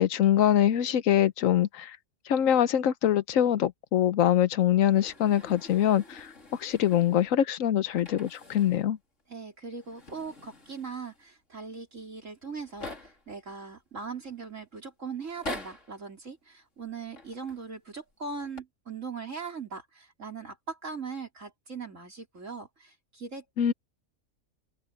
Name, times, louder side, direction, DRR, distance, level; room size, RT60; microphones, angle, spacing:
voice 1, 0.0-2.0 2.3-6.3 6.6-9.0 23.6-23.7, left 10 dB, 85° left, 1.2 m, -24 dB
sound 1, 4.9-7.4 7.9-8.9 9.2-9.3 9.7-11.3 12.0-12.1 12.3-13.3 14.0-14.5 15.2-16.0 17.1-17.7 18.3-18.6, left 1 dB, 65° left, 4.0 m, -45 dB
voice 2, 9.3-23.4, right 5 dB, 70° right, 4.7 m, -40 dB
open air
omnidirectional pair, 1.4 m